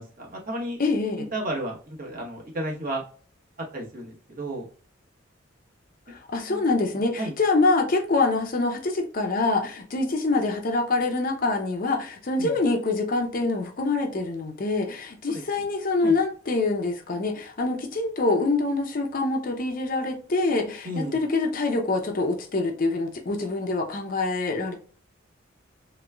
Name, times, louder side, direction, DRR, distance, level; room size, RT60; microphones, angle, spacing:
voice 1, 0.0-0.8 1.2-3.0 3.7-4.7 6.5-7.3 12.4-12.5 15.3-15.4 16.0-16.2 20.8-21.2, right 1 dB, 45° right, 1.0 m, -33 dB
voice 2, 0.8-1.3 6.1-24.7, left 3 dB, 45° left, 0.6 m, -25 dB
3.2 x 3.0 x 2.2 m
head